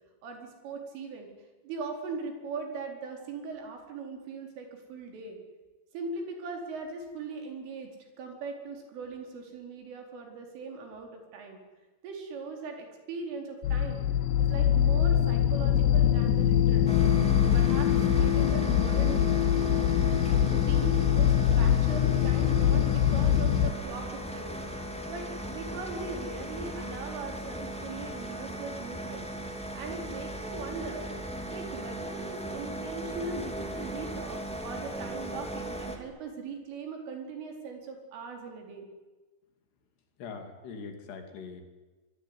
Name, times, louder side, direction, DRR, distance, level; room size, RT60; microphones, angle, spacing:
voice 1, 0.2-1.3 1.6-5.4 5.9-7.9 8.2-11.6 12.0-14.0 14.4-16.9 17.3-19.3 20.5-24.5 25.1-29.3 29.7-31.2 31.5-38.9, right 4 dB, 80° right, 3 dB, 6.9 m, -40 dB
sound 1, 13.6-23.7, left 10 dB, 80° left, 2.1 m, -23 dB
sound 2, 16.9-36.0, right 1 dB, ahead, 1.3 m, -37 dB
voice 2, 40.2-41.6, left 5 dB, 60° left, 6 dB, 4.8 m, -42 dB
25.5 x 22.5 x 9.7 m, 1.2 s
omnidirectional pair, 5.6 m